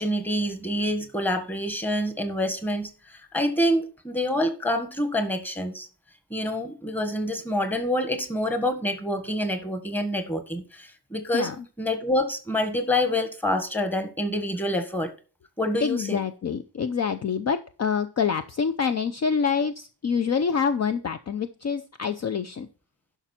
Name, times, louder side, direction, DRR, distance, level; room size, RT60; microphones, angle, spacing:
voice 1, 0.0-5.9 6.3-11.5 11.8-15.1 15.6-16.2, left 1 dB, 5° left, 1.5 m, -27 dB
voice 2, 11.3-11.6 15.8-22.7, left 6 dB, 40° left, 0.6 m, -26 dB
11.5 x 6.0 x 4.4 m
wide cardioid pair, 165°, 41 cm